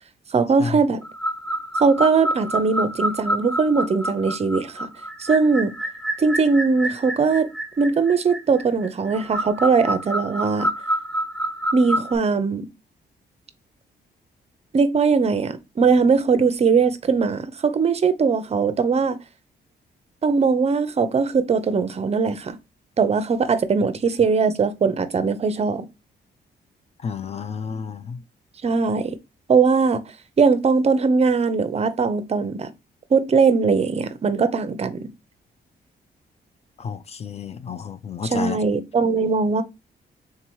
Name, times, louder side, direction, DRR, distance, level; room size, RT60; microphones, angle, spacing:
voice 1, 0.3-1.0 1.8-4.9 5.2-5.7 6.2-7.5 7.8-10.7 11.7-12.7 14.7-19.2 20.2-22.6 23.0-25.9 28.6-29.2 29.5-30.0 30.4-32.7 33.1-35.1 38.3-39.6, right 5 dB, 35° right, 0.6 m, -20 dB
sound 1, 1.0-12.2, right 1 dB, ahead, 1.3 m, -28 dB
voice 2, 27.0-28.2 36.8-38.6, left 6 dB, 35° left, 0.4 m, -31 dB
3.8 x 2.8 x 4.5 m
cardioid pair, 115°, 17 cm